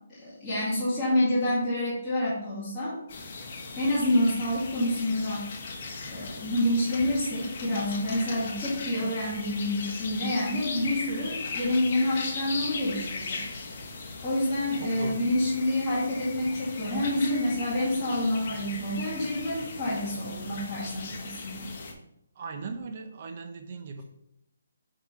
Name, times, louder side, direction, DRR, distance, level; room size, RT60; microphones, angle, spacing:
voice 1, 0.2-3.0 3.8-5.5 6.1-13.4 14.2-21.7, left 1 dB, 15° left, -11 dB, 2.0 m, -28 dB
sound 1, 3.1-21.9, left 4 dB, 40° left, 1.2 m, -38 dB
voice 2, 14.8-15.2 22.4-24.0, right 4 dB, 40° right, 6 dB, 0.8 m, -38 dB
8.2 x 3.9 x 3.2 m, 0.81 s
hypercardioid pair, 160°, 0 cm